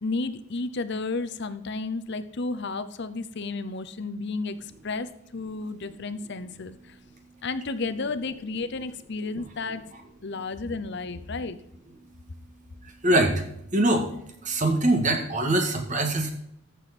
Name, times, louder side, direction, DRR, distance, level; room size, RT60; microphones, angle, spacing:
voice 1, 0.0-7.0 7.4-9.8 10.2-11.6, left 3 dB, 55° left, 12 dB, 0.7 m, -32 dB
voice 2, 12.8-13.4 13.7-14.1 14.4-16.3, right 1 dB, 35° right, 5 dB, 1.7 m, -23 dB
14.0 x 7.2 x 4.2 m, 0.73 s
head